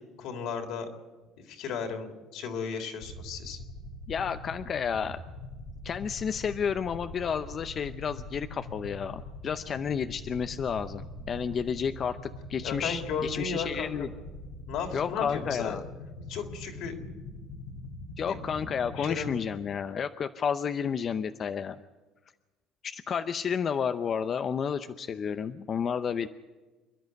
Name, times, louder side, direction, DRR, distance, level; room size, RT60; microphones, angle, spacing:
voice 1, 0.2-0.9 1.5-3.6 12.6-14.1 14.7-15.8 16.3-16.9 18.2-18.4 19.0-19.3, left 6 dB, 70° left, 4 dB, 3.3 m, -35 dB
sound 1, 3.0-19.5, left 2 dB, 90° left, 3.0 m, -43 dB
voice 2, 4.1-5.2 5.8-14.1 14.9-15.8 18.2-21.8 22.8-26.3, left 7 dB, 40° left, 9 dB, 0.7 m, -31 dB
27.5 x 11.0 x 9.4 m, 1.2 s
cardioid pair, 110°, 0 cm